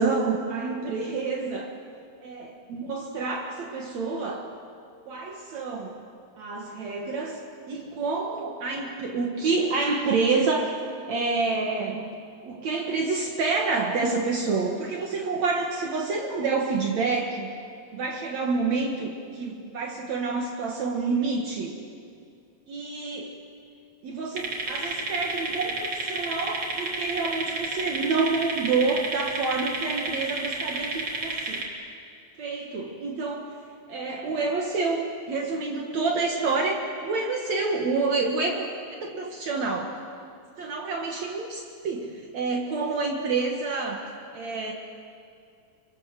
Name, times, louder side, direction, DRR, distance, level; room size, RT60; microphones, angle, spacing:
voice 1, 0.0-1.7 2.7-4.5 5.1-5.9 6.4-7.4 7.7-10.8 11.1-12.1 12.4-17.5 17.9-21.8 22.7-23.4 24.0-31.6 32.4-33.5 33.9-38.7 39.0-40.0 40.6-44.7, right 4 dB, 60° right, 1 dB, 2.9 m, -28 dB
sound 1, 24.4-31.6, right 3 dB, 45° right, 4.4 m, -31 dB
28.0 x 26.0 x 7.6 m, 2.4 s
omnidirectional pair, 3.6 m